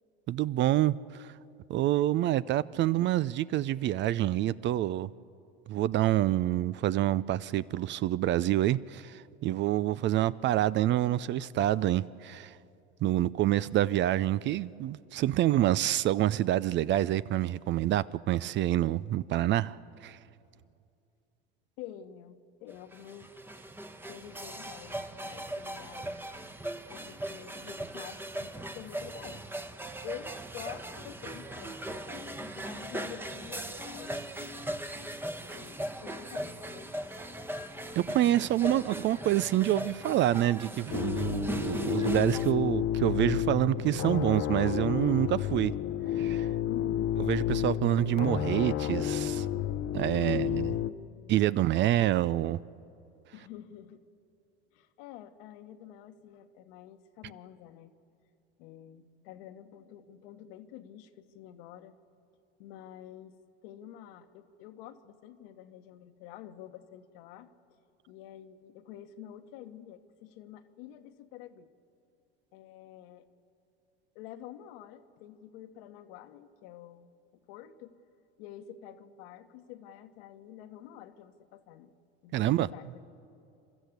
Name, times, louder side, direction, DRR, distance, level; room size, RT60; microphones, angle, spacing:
voice 1, 0.3-1.3 1.7-5.1 5.7-12.6 13.0-19.8 20.0-20.2 38.0-45.7 46.2-46.5 47.3-49.5 49.9-50.7 51.3-52.6 82.3-82.7, right 13 dB, 40° right, 0.5 m, -27 dB
voice 2, 21.8-23.3 24.1-26.2 26.9-29.5 30.0-34.7 35.4-36.9 38.7-39.2 46.7-47.2 50.2-51.5 53.3-54.0 54.7-57.9 58.6-61.9 62.6-67.5 68.1-71.7 72.5-73.2 74.1-77.1 77.5-78.0 78.4-81.9 82.2-83.0, left 11 dB, 65° left, 1.4 m, -48 dB
sound 1, 22.7-42.5, right 1 dB, 5° right, 1.1 m, -39 dB
sound 2, 40.9-50.9, left 11 dB, 45° left, 0.9 m, -31 dB
29.5 x 13.0 x 8.2 m
hypercardioid pair, 85°, 30 cm